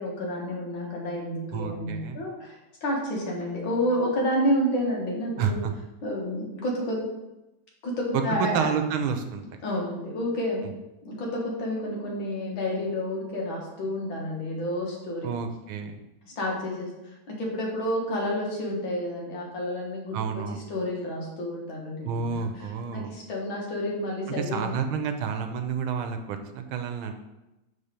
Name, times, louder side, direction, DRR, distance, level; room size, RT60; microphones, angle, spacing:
voice 1, 0.0-5.6 6.0-7.1 7.8-8.7 9.6-10.7 11.1-15.3 16.2-16.9 17.3-20.2 20.5-22.5 22.9-24.7, equal, 70° left, -2 dB, 2.2 m, -30 dB
voice 2, 1.5-2.2 5.4-5.7 8.4-9.6 15.2-16.0 20.1-20.7 22.0-23.1 24.4-27.1, right 6 dB, 90° right, 6 dB, 1.5 m, -30 dB
5.5 x 4.4 x 5.1 m, 0.97 s
omnidirectional pair, 2.2 m